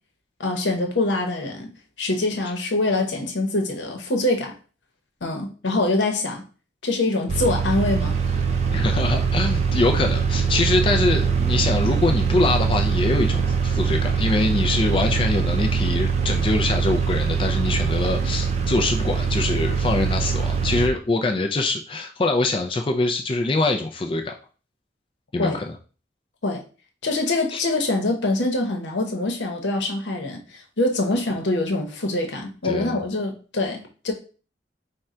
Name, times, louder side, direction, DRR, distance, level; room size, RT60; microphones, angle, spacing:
voice 1, 0.4-4.5 5.2-6.4 6.8-8.3 25.4-25.6 26.4-26.6 27.0-34.1, left 2 dB, 90° left, 3 dB, 0.9 m, -24 dB
sound 1, 7.3-20.9, right 5 dB, 35° right, 0.4 m, -23 dB
voice 2, 8.7-24.3 25.3-25.7 27.5-27.6 32.6-33.0, left 2 dB, 30° left, 3 dB, 0.3 m, -24 dB
3.7 x 2.2 x 4.2 m, 0.37 s
head